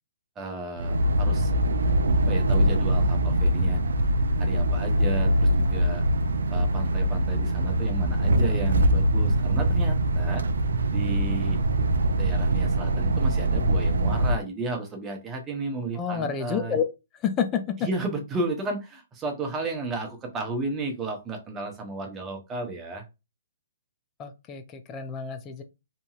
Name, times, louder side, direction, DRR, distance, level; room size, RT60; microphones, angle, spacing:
voice 1, 0.4-1.5 2.3-3.8 4.4-6.0 6.5-10.5 10.9-11.6 12.2-16.8 17.8-23.0, right 3 dB, 15° right, 0.8 m, -33 dB
sound 1, 0.8-14.4, right 1 dB, 85° right, 0.3 m, -23 dB
voice 2, 16.0-16.8 17.2-17.9 24.2-25.6, left 7 dB, 20° left, 0.4 m, -29 dB
2.8 x 2.6 x 2.3 m
hypercardioid pair, 150°, 0 cm